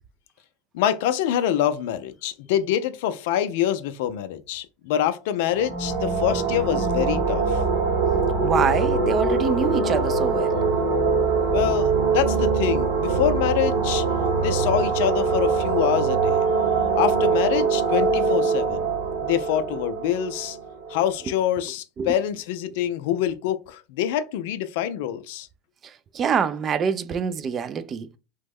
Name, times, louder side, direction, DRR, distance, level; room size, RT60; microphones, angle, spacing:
voice 1, 0.7-7.6 11.5-14.0 14.4-16.5 16.9-18.9 19.2-20.6 20.9-25.5, left 10 dB, 70° left, 0.4 m, -25 dB
sound 1, 5.5-21.1, right 4 dB, 65° right, 0.9 m, -23 dB
voice 2, 8.4-10.6 22.0-22.1 26.1-28.1, right 6 dB, 35° right, 0.4 m, -25 dB
3.0 x 2.1 x 3.4 m
hypercardioid pair, 100°, 0 cm